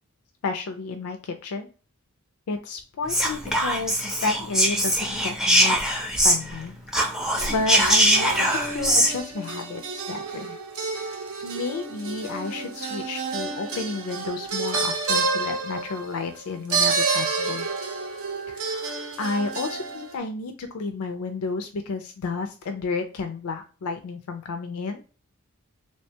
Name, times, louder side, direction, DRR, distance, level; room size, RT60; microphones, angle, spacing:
voice 1, 0.4-1.7 2.5-6.7 7.5-9.8 10.1-10.6 10.9-11.0 11.4-17.7 18.5-25.0, left 4 dB, 80° left, 5 dB, 0.4 m, -31 dB
Whispering, 3.1-6.6 6.9-9.1, right 1 dB, ahead, 0.4 m, -22 dB
sound 1, 7.4-20.2, right 4 dB, 70° right, 0.6 m, -29 dB
3.1 x 2.2 x 2.7 m, 0.35 s
head